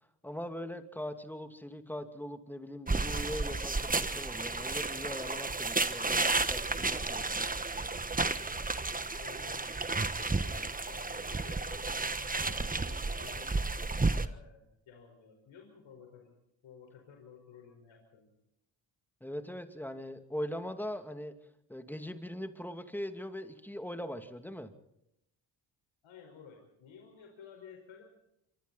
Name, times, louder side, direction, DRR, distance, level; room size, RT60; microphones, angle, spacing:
voice 1, 0.2-7.5 19.2-21.3 21.7-24.7, equal, 5° left, 7 dB, 2.6 m, -41 dB
sound 1, 2.9-14.3, right 3 dB, 20° right, 1.4 m, -32 dB
voice 2, 9.2-16.3 16.6-18.3 26.0-28.0, left 6 dB, 80° left, 3 dB, 5.0 m, -54 dB
26.0 x 24.0 x 4.2 m, 0.81 s
cardioid pair, 70°, 46 cm